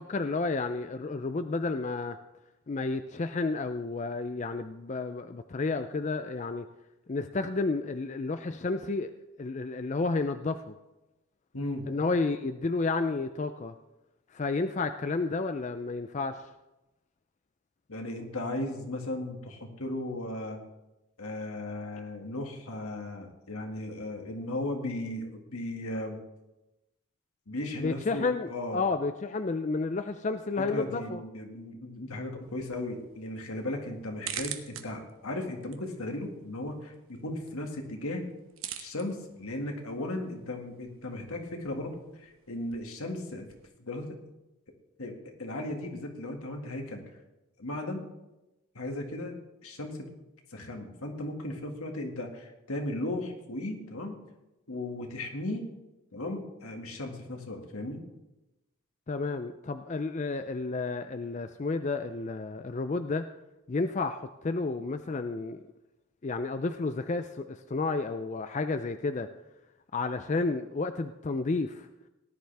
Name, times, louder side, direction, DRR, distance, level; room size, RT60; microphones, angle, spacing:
voice 1, 0.0-2.2 2.7-6.7 7.1-9.1 9.4-10.7 11.9-13.7 14.3-16.5 27.8-31.2 59.1-63.3 63.7-65.6 66.2-69.3 69.9-71.9, left 3 dB, 35° left, 9 dB, 0.4 m, -31 dB
voice 2, 11.5-11.9 17.9-20.6 21.2-26.2 27.5-28.8 30.6-38.2 38.8-43.5 43.8-44.2 45.0-47.0 47.6-48.0 48.7-49.3 49.6-50.1 50.5-54.1 54.7-55.7 56.1-58.0, left 1 dB, 80° left, 2 dB, 2.0 m, -36 dB
sound 1, 32.4-43.7, right 9 dB, 70° right, 1.0 m, -46 dB
18.0 x 10.5 x 3.4 m, 0.98 s
head